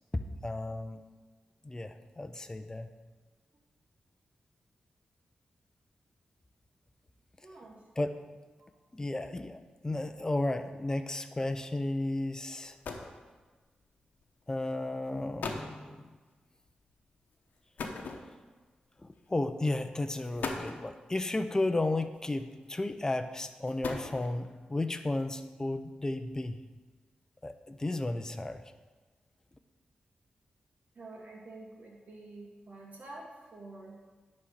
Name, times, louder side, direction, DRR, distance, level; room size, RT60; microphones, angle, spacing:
voice 1, 0.4-1.0 1.6-2.9 8.0-8.2 8.9-12.8 14.5-16.0 19.0-26.6 27.4-28.6, left 2 dB, 20° left, 9 dB, 0.6 m, -33 dB
voice 2, 7.4-7.8 30.9-34.0, right 2 dB, 60° right, -3 dB, 2.6 m, -48 dB
sound 1, 12.6-13.2 14.2-14.4 15.1-15.2 15.4-15.8 17.8-18.6 19.6-19.7 20.2-20.9 22.2-22.6 23.5-24.5, left 4 dB, 85° left, 1.0 m, -39 dB
11.0 x 4.3 x 6.5 m, 1.3 s
cardioid pair, 75°, 3 cm